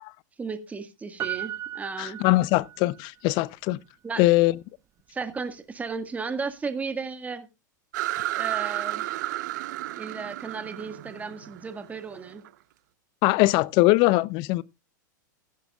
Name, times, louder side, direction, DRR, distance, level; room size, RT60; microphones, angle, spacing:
voice 1, 0.4-2.2 4.0-4.2 5.1-7.5 8.3-9.1 10.0-12.4, right 4 dB, 15° right, 1.8 m, -34 dB
Piano, 1.2-3.0 3.3-3.4, right 11 dB, 30° right, 0.7 m, -36 dB
voice 2, 2.0-3.8 4.2-4.5 13.2-14.6, left 20 dB, 50° left, 0.6 m, -21 dB
sound 1, 7.9-12.5, right 17 dB, 65° right, 0.9 m, -32 dB
16.0 x 10.5 x 2.4 m
hypercardioid pair, 120°, 10 cm